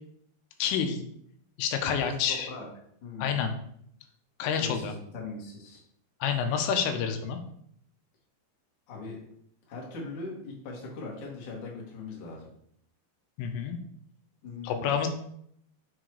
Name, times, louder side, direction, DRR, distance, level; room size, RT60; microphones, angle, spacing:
voice 1, 0.6-1.0 1.6-2.5 3.2-3.6 4.4-4.9 6.2-7.4 13.4-13.8 14.6-15.1, left 7 dB, 90° left, 6 dB, 3.3 m, -28 dB
voice 2, 2.0-2.7 3.0-3.4 4.5-5.8 8.9-9.2 9.7-12.5 14.4-14.9, left 3 dB, 50° left, -3 dB, 2.5 m, -40 dB
7.3 x 3.9 x 4.7 m, 0.68 s
omnidirectional pair, 5.5 m